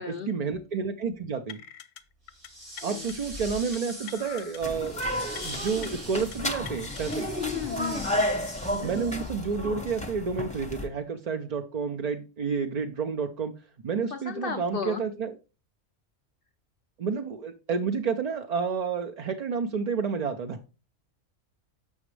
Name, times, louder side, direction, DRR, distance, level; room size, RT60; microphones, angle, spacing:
voice 1, 0.1-1.6 2.8-5.1 5.4-7.3 8.8-13.5 13.8-15.3 17.0-20.6, right 5 dB, 55° right, 0.4 m, -30 dB
sound 1, 1.5-2.0 2.3-2.5 2.8-3.1 3.7-4.6 4.9-5.1 5.3-5.9 6.3-7.2, left 11 dB, 80° left, 0.9 m, -43 dB
sound 2, 2.3-9.5, equal, 75° right, 5.3 m, -43 dB
sound 3, 4.6-10.9, left 1 dB, 5° left, 0.6 m, -32 dB
voice 2, 7.4-8.1 14.1-15.0, left 7 dB, 60° left, 0.6 m, -34 dB
7.2 x 5.9 x 3.2 m
omnidirectional pair, 1.3 m